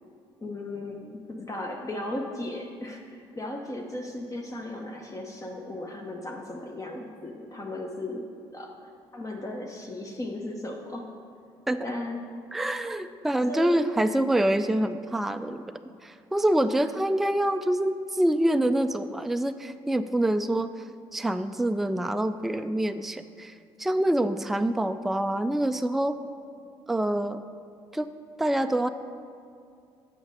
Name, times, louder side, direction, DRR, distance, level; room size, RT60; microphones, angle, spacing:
voice 1, 0.4-8.3 8.5-8.7 9.1-11.1 11.8-12.3 13.5-13.8, left 1 dB, 25° left, 1 dB, 0.9 m, -36 dB
voice 2, 12.5-15.7 16.0-20.8 21.1-23.5 23.8-26.2 26.9-27.4 27.9-28.1 28.4-28.9, right 1 dB, ahead, 9 dB, 0.3 m, -26 dB
7.1 x 5.2 x 6.3 m, 2.4 s
hypercardioid pair, 55°, 13 cm